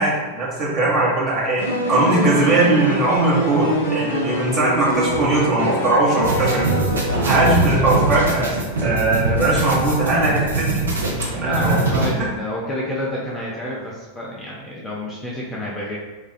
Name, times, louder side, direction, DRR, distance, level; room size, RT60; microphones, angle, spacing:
voice 1, 0.0-1.6 1.9-6.6 7.2-8.5 8.8-10.8 11.3-11.8 12.1-12.3, right 2 dB, 25° right, -5 dB, 0.8 m, -19 dB
sound 1, 1.6-8.2, equal, 65° left, 0.6 m, -24 dB
sound 2, 6.2-12.1, right 2 dB, 70° right, 0.5 m, -23 dB
voice 2, 11.4-16.0, left 1 dB, 10° left, -5 dB, 0.4 m, -29 dB
2.4 x 2.3 x 2.2 m, 1.3 s
figure-of-eight pair, 90°, 0 cm